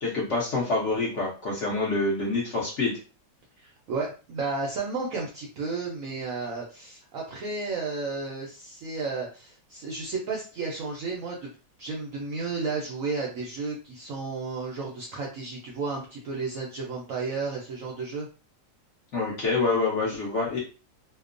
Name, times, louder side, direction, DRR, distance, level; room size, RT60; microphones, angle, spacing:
voice 1, 0.0-2.9 19.1-20.6, left 3 dB, 60° left, -4 dB, 0.8 m, -26 dB
voice 2, 3.6-11.5 11.8-18.3, right 4 dB, 70° right, -2 dB, 0.7 m, -33 dB
2.8 x 2.0 x 2.4 m, 0.35 s
omnidirectional pair, 1.9 m